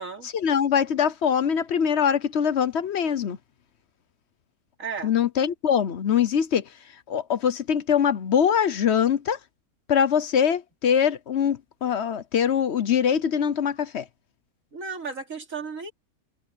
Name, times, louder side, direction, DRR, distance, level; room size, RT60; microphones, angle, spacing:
voice 1, 0.2-3.4 5.0-6.7 7.1-9.4 9.9-14.1, left 8 dB, 55° left, 1.0 m, -23 dB
voice 2, 4.8-5.1 14.7-15.9, right 5 dB, 60° right, 3.4 m, -34 dB
omnidirectional pair, 1.6 m